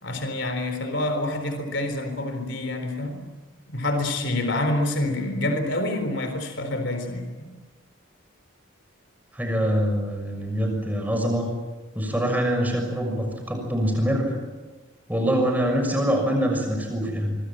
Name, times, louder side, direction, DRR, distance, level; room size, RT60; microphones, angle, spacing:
voice 1, 0.0-3.3 3.7-7.5 15.4-15.5, left 1 dB, 60° left, 7 dB, 3.9 m, -27 dB
voice 2, 9.3-11.5 11.9-14.3 15.1-17.4, equal, 10° right, 3 dB, 6.3 m, -24 dB
25.5 x 24.5 x 7.5 m, 1.2 s
head